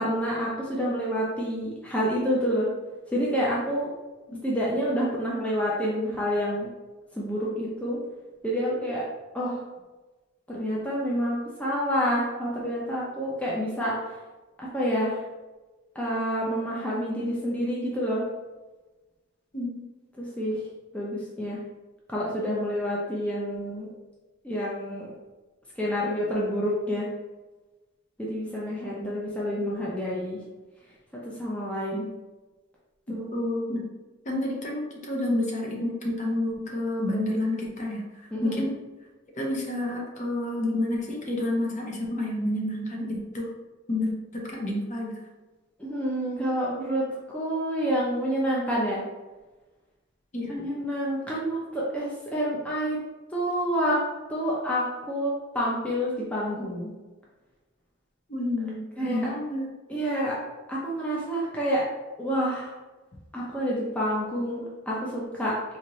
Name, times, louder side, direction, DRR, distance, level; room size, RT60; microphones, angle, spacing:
voice 1, 0.0-2.7 3.1-3.9 4.4-6.7 7.1-8.0 8.4-9.0 9.3-9.6 10.5-14.0 14.6-15.2 16.0-18.2 20.2-20.6 20.9-21.6 22.1-23.9 24.4-25.1 25.8-27.1 28.2-30.4 31.4-32.1 33.1-33.3 38.3-38.6 45.8-47.1 47.3-49.0 50.5-53.0 53.3-54.0 54.3-56.9 59.0-59.3 59.9-60.4 60.7-61.8 62.2-62.7 63.3-65.5, equal, 5° left, -6 dB, 0.5 m, -28 dB
voice 2, 33.3-33.9 34.3-38.0 38.4-38.7 39.3-43.5 43.9-45.1 50.3-50.6 58.3-59.7, left 1 dB, 40° left, -1 dB, 0.7 m, -29 dB
4.2 x 2.6 x 3.0 m, 1.2 s
head